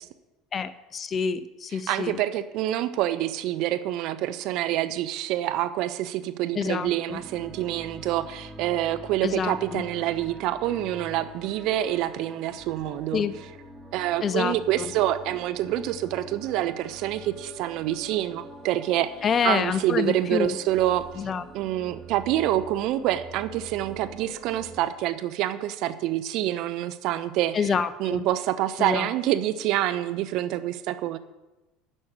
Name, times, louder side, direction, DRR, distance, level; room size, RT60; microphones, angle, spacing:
voice 1, 0.5-2.2 6.6-7.2 9.2-9.8 13.1-13.3 14.2-14.9 19.2-20.5 21.2-21.4 27.5-28.2 28.8-29.1, left 6 dB, 35° left, 13 dB, 0.9 m, -27 dB
voice 2, 1.7-13.2 13.9-19.1 19.4-21.1 21.5-31.2, right 13 dB, 60° right, 12 dB, 0.8 m, -27 dB
sound 1, 7.2-24.8, right 1 dB, 25° right, 2.4 m, -45 dB
11.0 x 6.5 x 8.8 m, 1.0 s
hypercardioid pair, 80°, 0 cm